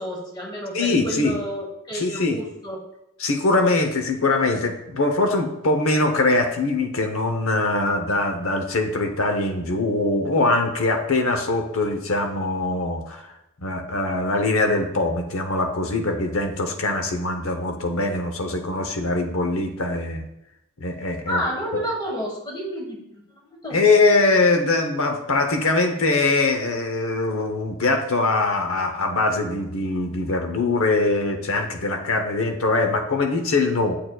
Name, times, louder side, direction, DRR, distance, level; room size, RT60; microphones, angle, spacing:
voice 1, 0.0-2.8 21.3-24.2, equal, 20° left, -1 dB, 1.4 m, -31 dB
voice 2, 0.7-1.4 1.9-2.4 3.2-13.3 13.6-20.2 20.8-21.4 23.7-33.9, left 2 dB, 70° left, 5 dB, 0.8 m, -22 dB
7.7 x 6.6 x 2.3 m, 0.85 s
head